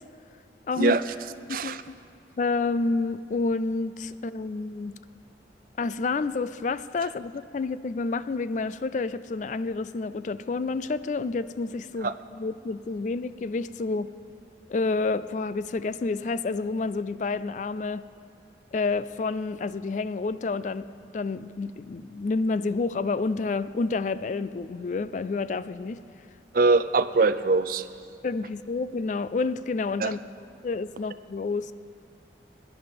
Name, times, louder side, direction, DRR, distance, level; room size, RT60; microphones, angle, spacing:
voice 1, 0.7-1.0 1.5-2.0 2.4-5.0 5.8-14.1 14.7-18.0 18.7-20.9 21.1-26.0 28.2-30.2 30.6-31.7, left 3 dB, 40° left, 15 dB, 0.3 m, -29 dB
voice 2, 26.5-27.8 30.0-30.1, right 3 dB, 50° right, 13 dB, 0.4 m, -22 dB
17.0 x 11.0 x 5.2 m, 2.5 s
head